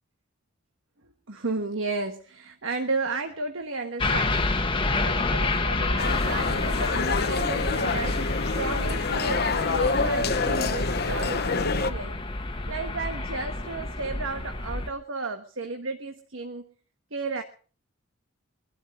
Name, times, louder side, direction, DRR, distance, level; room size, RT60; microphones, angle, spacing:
voice 1, 1.3-4.4 4.9-8.3 8.5-12.2 12.7-16.7 17.1-17.4, right 3 dB, 70° right, 6 dB, 1.3 m, -33 dB
sound 1, 4.0-14.9, left 2 dB, 25° left, 1.2 m, -28 dB
sound 2, 6.0-11.9, left 4 dB, 50° left, 0.8 m, -27 dB
22.5 x 12.0 x 4.3 m, 0.40 s
head